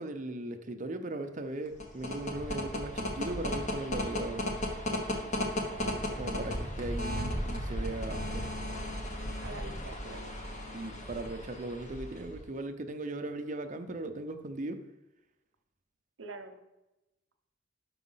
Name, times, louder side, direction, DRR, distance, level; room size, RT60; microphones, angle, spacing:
voice 1, 0.0-4.4 6.2-8.4 10.7-14.8, right 2 dB, 40° right, 7 dB, 0.6 m, -38 dB
sound 1, 1.7-12.4, left 1 dB, 40° left, 1.0 m, -35 dB
voice 2, 5.5-6.4 9.4-10.4 16.2-16.6, right 3 dB, 90° right, 7 dB, 0.8 m, -46 dB
6.1 x 4.9 x 5.6 m, 0.98 s
head